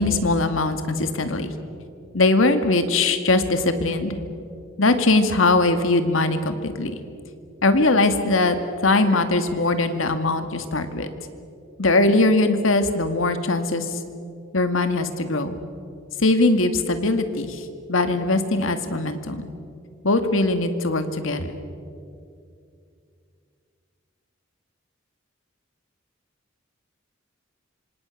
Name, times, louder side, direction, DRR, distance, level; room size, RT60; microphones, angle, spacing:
voice 1, 0.0-1.5 2.1-4.2 4.8-7.0 7.6-8.6 8.8-11.1 11.8-14.0 14.5-15.6 16.2-17.6 17.9-19.5 20.0-21.5, left 2 dB, 85° left, 8 dB, 2.0 m, -21 dB
26.0 x 26.0 x 6.5 m, 2.5 s
head